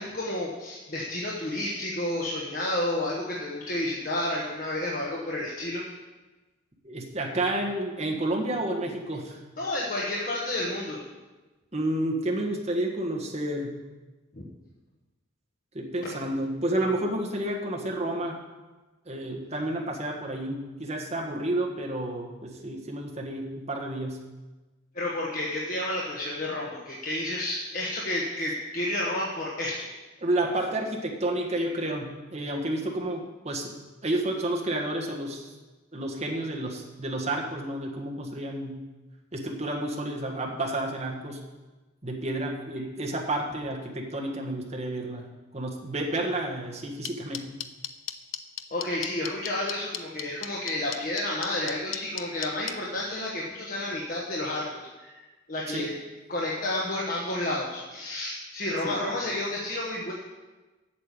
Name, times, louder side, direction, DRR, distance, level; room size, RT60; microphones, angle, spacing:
voice 1, 0.0-5.8 9.6-11.0 14.3-14.4 24.9-29.9 48.7-55.2 55.5-55.9 56.3-60.1, left 1 dB, 45° left, -3 dB, 1.3 m, -31 dB
voice 2, 6.8-9.4 11.7-13.7 15.7-18.4 19.1-24.2 30.2-33.7 34.0-35.5 35.9-38.8 39.3-41.4 42.0-45.3 45.5-47.5 55.7-55.8 58.8-58.9, right 1 dB, 35° right, 0 dB, 1.5 m, -30 dB
sound 1, 47.0-52.7, left 11 dB, 85° left, 0.6 m, -33 dB
8.5 x 6.7 x 8.3 m, 1.2 s
head